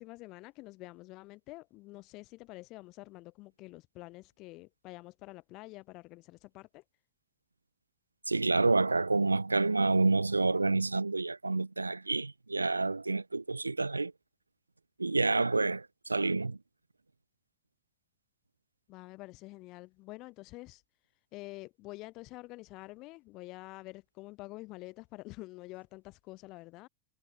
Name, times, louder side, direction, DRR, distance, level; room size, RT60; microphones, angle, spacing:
voice 1, 0.0-6.8 18.9-20.8 21.3-26.9, left 21 dB, 45° left, 2.3 m, -47 dB
voice 2, 8.3-14.1 15.0-16.6, right 3 dB, 85° right, 0.4 m, -28 dB
figure-of-eight pair, 85°, 0 cm